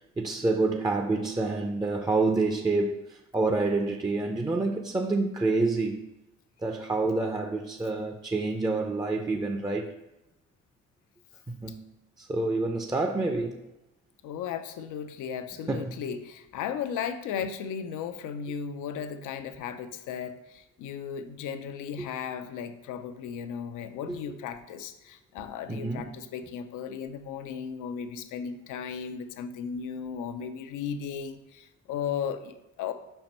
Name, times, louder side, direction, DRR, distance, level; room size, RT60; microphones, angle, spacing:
voice 1, 0.2-6.0 6.6-9.9 11.5-11.8 12.2-13.6 15.7-15.9 22.0-22.1 24.1-24.2 25.7-26.1, right 3 dB, 15° right, 4 dB, 0.5 m, -28 dB
voice 2, 14.2-32.9, left 7 dB, 90° left, 9 dB, 0.6 m, -36 dB
5.0 x 4.5 x 5.3 m, 0.95 s
cardioid pair, 90°, 30 cm